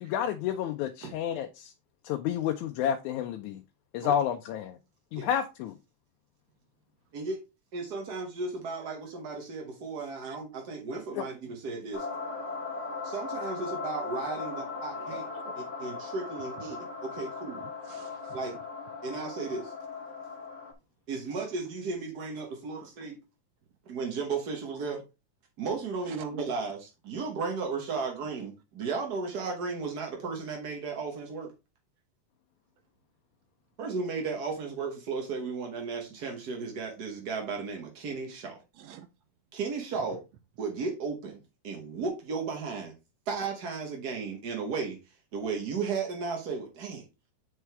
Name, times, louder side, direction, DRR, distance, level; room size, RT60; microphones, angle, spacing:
voice 1, 0.0-1.7 2.0-3.6 3.9-4.8 5.1-5.8 11.1-11.3, left 9 dB, 80° left, 2.0 m, -30 dB
voice 2, 7.7-12.1 13.0-15.2 15.8-17.7 18.3-18.5 19.0-19.7 21.1-23.2 23.9-25.0 25.6-31.5 33.8-38.6 39.5-40.2 40.6-42.9 43.3-45.0 45.3-47.0, right 4 dB, 55° right, 1.0 m, -34 dB
sound 1, 11.9-20.7, left 4 dB, 40° left, 1.1 m, -38 dB
voice 3, 14.7-15.6 16.6-16.7 17.6-18.4 26.1-26.2 38.7-39.1, right 8 dB, 75° right, 1.6 m, -49 dB
8.3 x 4.8 x 3.4 m
omnidirectional pair, 3.5 m